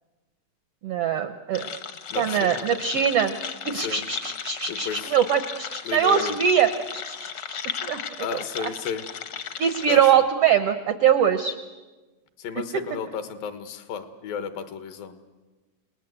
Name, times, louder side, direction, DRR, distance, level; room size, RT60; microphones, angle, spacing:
voice 1, 0.8-1.7 2.2-3.4 3.6-8.0 8.3-8.7 9.6-11.6, right 8 dB, 80° right, 9 dB, 1.3 m, -23 dB
sound 1, 1.5-10.1, left 8 dB, 65° left, 1.4 m, -36 dB
voice 2, 2.1-2.7 3.7-4.0 4.7-5.2 5.8-6.4 8.2-9.0 9.9-10.0 12.4-15.1, left 7 dB, 85° left, 9 dB, 3.2 m, -33 dB
29.5 x 19.0 x 8.0 m, 1.2 s
omnidirectional pair, 4.0 m